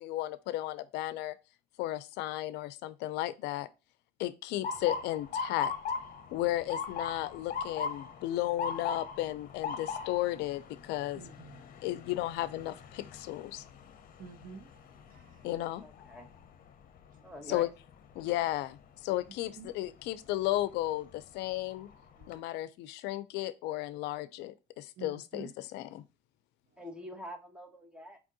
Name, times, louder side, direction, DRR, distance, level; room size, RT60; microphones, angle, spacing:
voice 1, 0.0-1.4 1.8-3.7 4.2-5.7 6.3-11.2 11.8-13.6 15.4-15.8 17.5-17.7 18.2-21.9 22.3-26.0, left 15 dB, 90° left, 0.4 m, -34 dB
Motor vehicle (road) / Siren, 4.6-16.5 17.0-17.4 18.2-18.5 20.4-20.6 21.1-21.2 21.6-22.3, left 5 dB, 55° left, 0.7 m, -39 dB
voice 2, 11.2-11.6 14.2-14.7 15.1-15.4 17.5-17.6 19.6-19.7 22.2-22.4 25.0-25.5, right 5 dB, 55° right, 0.5 m, -48 dB
voice 3, 15.8-16.3 17.2-17.7 26.8-28.2, left 1 dB, 5° right, 1.1 m, -46 dB
4.8 x 3.6 x 2.6 m
cardioid pair, 110°, 17 cm